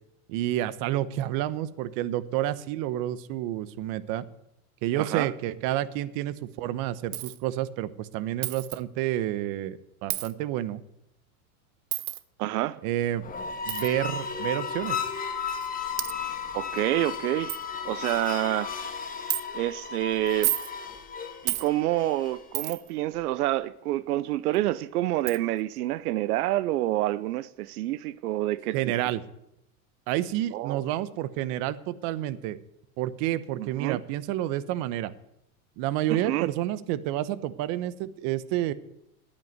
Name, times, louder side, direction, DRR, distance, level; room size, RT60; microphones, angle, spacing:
voice 1, 0.3-4.2 4.8-10.8 12.8-13.2 13.7-15.0 28.7-29.2 30.1-32.6 33.0-35.1 35.8-38.7, right 13 dB, 50° right, 1.0 m, -29 dB
voice 2, 5.0-5.3 12.4-12.8 16.5-17.5 17.8-18.7 19.5-20.5 21.4-28.8 30.5-30.8 33.6-34.0 36.1-36.5, right 15 dB, 85° right, 0.7 m, -28 dB
Coin (dropping), 7.1-7.4 8.4-8.8 10.1-10.3 11.9-12.2 13.7-13.9 14.8-14.9 15.6-15.7 16.0-16.1 16.8-16.9 17.1-17.2 17.5-17.6 18.1-18.4 19.3-19.4 20.3-20.7 21.5-21.7 22.5-22.9 24.5-24.6 25.3-25.4, right 17 dB, 70° right, 1.0 m, -30 dB
sound 1, 13.1-22.5, left 6 dB, 20° left, 1.4 m, -35 dB
11.0 x 9.6 x 9.4 m
supercardioid pair, 135°, 44 cm